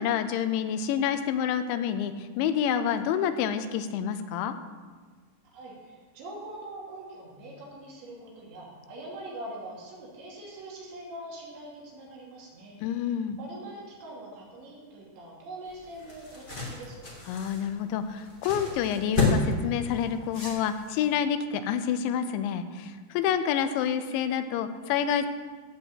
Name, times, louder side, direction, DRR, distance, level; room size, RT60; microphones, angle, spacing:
voice 1, 0.0-4.5 12.8-13.4 17.3-25.3, left 8 dB, 85° left, 10 dB, 3.0 m, -28 dB
voice 2, 5.5-13.1 13.3-17.1, right 1 dB, 75° right, -4 dB, 4.9 m, -43 dB
sound 1, 15.7-21.1, left 3 dB, 35° left, 0.8 m, -31 dB
16.0 x 5.4 x 7.6 m, 1.5 s
omnidirectional pair, 5.2 m